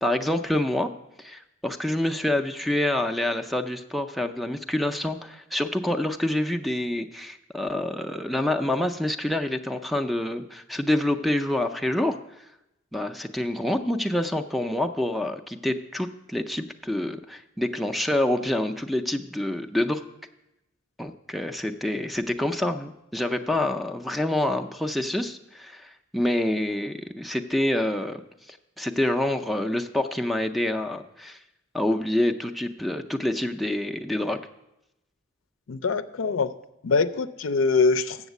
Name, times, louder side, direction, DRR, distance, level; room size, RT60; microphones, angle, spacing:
voice 1, 0.0-0.9 1.2-12.2 12.9-20.0 21.0-28.2 28.5-31.4 31.7-34.4, left 1 dB, ahead, 7 dB, 0.4 m, -27 dB
voice 2, 35.7-36.5 36.8-38.3, left 4 dB, 80° left, 11 dB, 0.5 m, -23 dB
7.3 x 7.2 x 8.0 m, 0.90 s
head